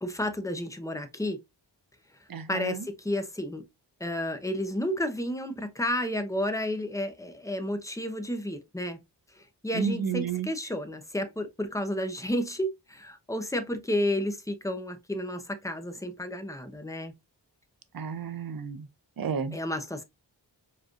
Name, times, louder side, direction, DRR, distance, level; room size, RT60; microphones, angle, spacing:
voice 1, 0.0-1.4 2.5-3.6 4.0-9.0 9.4-17.1 19.5-20.0, left 1 dB, 5° left, 0.9 m, -31 dB
voice 2, 2.3-2.9 9.7-10.5 17.9-18.9 19.2-19.6, right 6 dB, 55° right, 0.7 m, -31 dB
4.8 x 3.1 x 2.4 m
wide cardioid pair, 65°, 43 cm